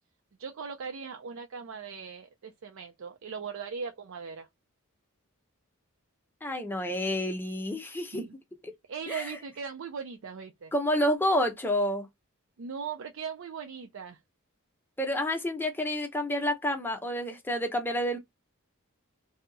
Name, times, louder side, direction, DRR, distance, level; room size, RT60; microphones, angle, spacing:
voice 1, 0.4-4.5 8.1-8.2 8.9-10.7 12.6-14.2, right 6 dB, 65° right, 0.4 m, -39 dB
voice 2, 6.4-8.3 8.6-8.7 9.1-9.3 10.7-12.1 15.0-18.2, equal, 10° left, 0.7 m, -29 dB
2.8 x 2.3 x 3.9 m
head